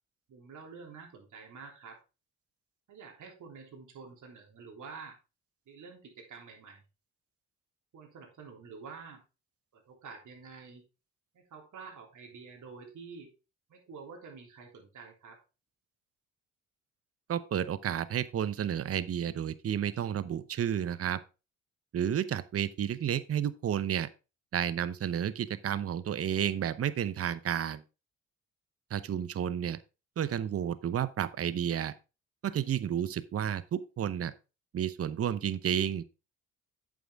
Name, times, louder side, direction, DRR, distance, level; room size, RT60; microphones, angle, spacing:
voice 1, 0.3-2.0 2.9-5.2 5.7-6.8 7.9-9.2 9.7-10.9 11.3-13.3 13.7-15.4 32.5-32.6, right 5 dB, 65° right, 3.4 m, -48 dB
voice 2, 17.3-21.2 21.9-24.1 24.5-27.8 28.9-29.8 30.2-31.9 32.4-34.3 34.7-36.0, right 9 dB, 45° right, 0.7 m, -31 dB
8.5 x 7.3 x 3.5 m
supercardioid pair, 65°, 32 cm